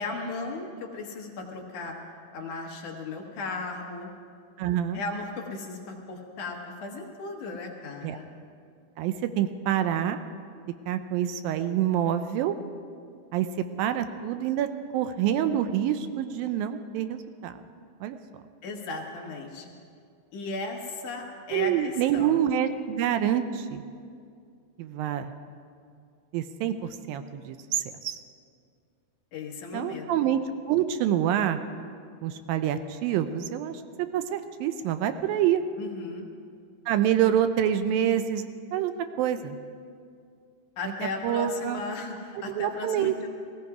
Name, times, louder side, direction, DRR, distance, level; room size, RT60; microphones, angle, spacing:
voice 1, 0.0-2.0 2.3-4.1 4.9-8.3 18.6-19.7 20.3-22.4 29.3-30.2 35.8-36.3 40.8-43.3, left 3 dB, 65° left, 1 dB, 2.6 m, -36 dB
voice 2, 4.6-5.0 8.0-8.2 9.0-10.2 10.9-12.6 13.3-14.7 14.9-17.6 18.0-18.2 21.5-23.8 24.8-25.3 26.3-28.2 29.7-30.4 30.7-31.6 32.2-35.6 36.9-38.9 39.2-39.6 41.2-41.8 42.5-43.1, right 10 dB, 80° right, 10 dB, 2.3 m, -27 dB
17.0 x 17.0 x 4.8 m, 2.3 s
omnidirectional pair, 4.2 m